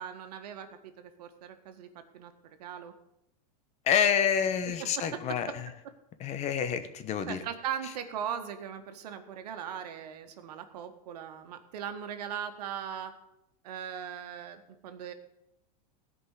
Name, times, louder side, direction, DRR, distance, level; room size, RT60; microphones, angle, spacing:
voice 1, 0.0-2.3 2.6-2.9 7.3-13.1 13.6-15.1, right 9 dB, 80° right, 7 dB, 1.7 m, -39 dB
voice 2, 3.9-5.7 6.2-7.4, left 8 dB, 35° left, 10 dB, 1.1 m, -28 dB
16.0 x 5.4 x 8.3 m, 0.86 s
supercardioid pair, 135°, 20 cm